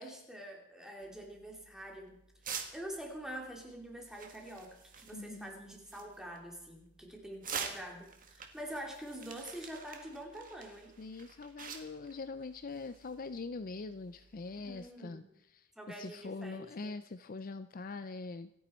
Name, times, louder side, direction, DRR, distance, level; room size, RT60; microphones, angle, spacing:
voice 1, 0.0-2.2 2.7-10.9 14.6-15.3 15.8-16.9, right 1 dB, ahead, 0 dB, 2.7 m, -46 dB
sound 1, 1.0-14.9, right 6 dB, 40° right, 1.7 m, -48 dB
voice 2, 5.1-5.6 11.0-15.2 15.5-18.5, left 3 dB, 40° left, 12 dB, 0.5 m, -43 dB
27.0 x 9.3 x 4.4 m, 0.81 s
head